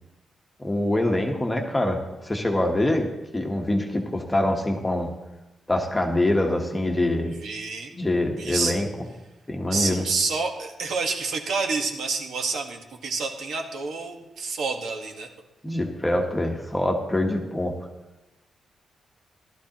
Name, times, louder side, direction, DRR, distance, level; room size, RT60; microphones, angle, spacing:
voice 1, 0.6-3.1 3.3-5.1 5.7-7.3 7.9-8.9 9.5-10.0 15.6-17.7, left 1 dB, 10° left, 2 dB, 1.1 m, -24 dB
voice 2, 7.3-7.9 8.4-8.8 9.7-15.3, right 4 dB, 65° right, 3 dB, 1.3 m, -28 dB
15.5 x 12.0 x 2.9 m, 1.0 s
wide cardioid pair, 170°, 0 cm